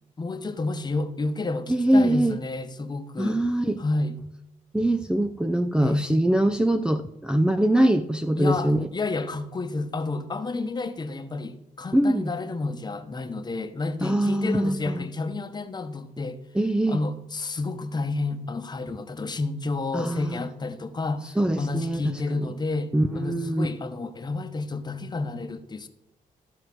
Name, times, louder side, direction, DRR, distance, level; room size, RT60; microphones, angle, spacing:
voice 1, 0.2-3.4 3.8-4.2 5.8-6.1 8.4-16.4 16.9-25.9, left 3 dB, 30° left, 1.1 m, -30 dB
voice 2, 1.7-2.4 3.2-3.8 4.7-8.9 11.9-12.3 14.0-15.0 16.5-17.0 19.9-20.4 21.4-22.1 22.4-22.5 22.9-23.7, right 1 dB, 5° right, 0.5 m, -23 dB
14.0 x 4.8 x 6.1 m
cardioid pair, 100°, 15 cm